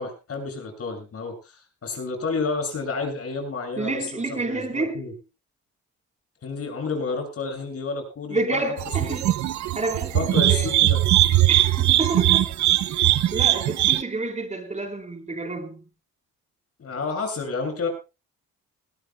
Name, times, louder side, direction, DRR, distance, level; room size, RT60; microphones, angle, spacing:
voice 1, 0.0-5.1 6.4-8.6 9.0-9.1 10.1-11.0 16.8-17.9, left 4 dB, 50° left, 7.4 m, -30 dB
voice 2, 3.8-5.1 8.3-9.3 9.7-10.8 11.5-12.5 12.9-15.8, right 2 dB, 25° right, 4.0 m, -29 dB
sound 1, 8.8-14.0, right 14 dB, 70° right, 0.8 m, -20 dB
20.5 x 18.0 x 2.3 m
cardioid pair, 90°, 30 cm